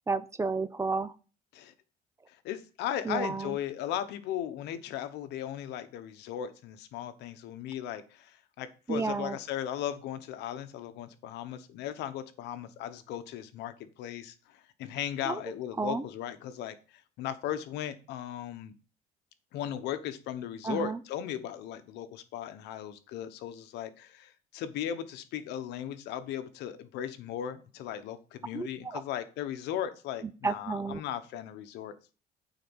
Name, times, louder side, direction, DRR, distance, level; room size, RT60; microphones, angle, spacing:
voice 1, 0.1-1.1 3.0-3.6 8.9-9.4 15.3-15.4 15.8-16.0 20.6-21.0 28.5-28.7 28.9-29.0 30.4-31.0, right 4 dB, 15° right, 15 dB, 0.6 m, -31 dB
voice 2, 2.3-18.7 19.5-32.0, left 10 dB, 85° left, 11 dB, 1.0 m, -37 dB
9.2 x 4.1 x 6.1 m, 0.35 s
cardioid pair, 110°, 17 cm